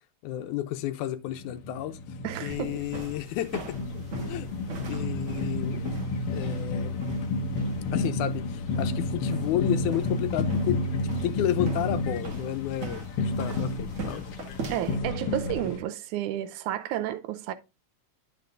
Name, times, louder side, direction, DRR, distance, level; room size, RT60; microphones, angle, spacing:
voice 1, 0.2-2.0 2.4-3.8 4.3-4.5 4.9-5.8 6.3-6.9 7.9-10.8 11.2-14.2, left 13 dB, 85° left, 2.1 m, -31 dB
sound 1, 1.3-15.8, left 2 dB, 65° left, 1.6 m, -31 dB
voice 2, 2.2-2.8 14.7-17.5, right 12 dB, 85° right, 2.1 m, -31 dB
sound 2, 2.5-15.0, right 3 dB, 55° right, 0.9 m, -42 dB
10.5 x 5.7 x 2.6 m
omnidirectional pair, 3.5 m